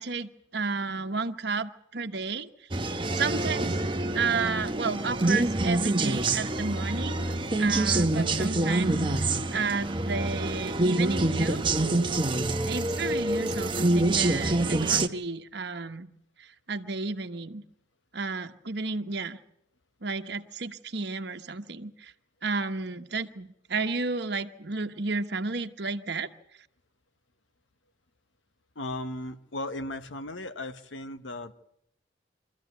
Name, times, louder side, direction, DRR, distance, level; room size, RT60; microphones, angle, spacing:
voice 1, 0.0-2.8 3.1-3.8 4.1-7.3 7.6-11.6 12.6-16.1 16.4-17.6 18.1-19.4 20.0-22.1 22.4-26.3, right 4 dB, 60° right, 6 dB, 1.2 m, -32 dB
sound 1, 2.7-15.1, right 2 dB, 25° right, 1.0 m, -26 dB
voice 2, 28.7-31.5, left 1 dB, 85° left, 10 dB, 1.1 m, -36 dB
25.0 x 14.5 x 9.4 m, 0.75 s
head